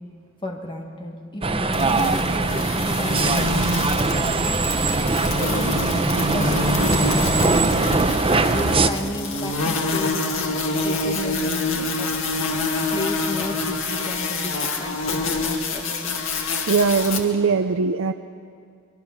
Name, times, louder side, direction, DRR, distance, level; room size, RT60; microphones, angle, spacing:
voice 1, 0.4-5.7 6.3-7.9 8.5-12.3 12.9-16.2, left 1 dB, 25° left, 2 dB, 2.1 m, -33 dB
sound 1, 1.4-8.9, right 3 dB, 25° right, 0.8 m, -21 dB
sound 2, 1.7-17.2, left 3 dB, 65° left, 2.1 m, -26 dB
voice 2, 16.7-18.1, right 5 dB, 70° right, 8 dB, 0.6 m, -20 dB
24.5 x 22.5 x 6.1 m, 2.4 s
head